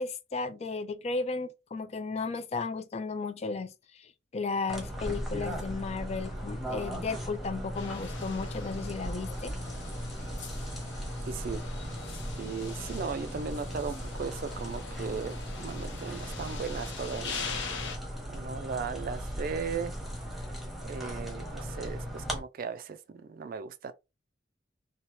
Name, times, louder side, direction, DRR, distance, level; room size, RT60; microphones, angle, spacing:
voice 1, 0.0-9.5, left 4 dB, 35° left, 0.4 m, -34 dB
sound 1, 4.7-22.4, equal, ahead, 0.8 m, -37 dB
sound 2, 7.7-18.0, left 5 dB, 85° left, 0.9 m, -43 dB
voice 2, 11.3-11.6 12.4-17.5 18.3-19.9 20.8-23.9, right 5 dB, 50° right, 0.4 m, -37 dB
2.9 x 2.3 x 3.0 m
head